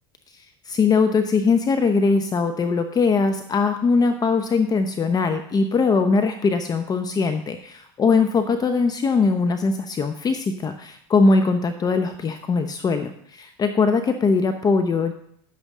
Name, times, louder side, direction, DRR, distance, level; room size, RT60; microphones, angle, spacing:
voice 1, 0.4-15.1, left 4 dB, 30° left, 7 dB, 0.8 m, -21 dB
9.6 x 8.0 x 3.7 m, 0.69 s
hypercardioid pair, 90°, 13 cm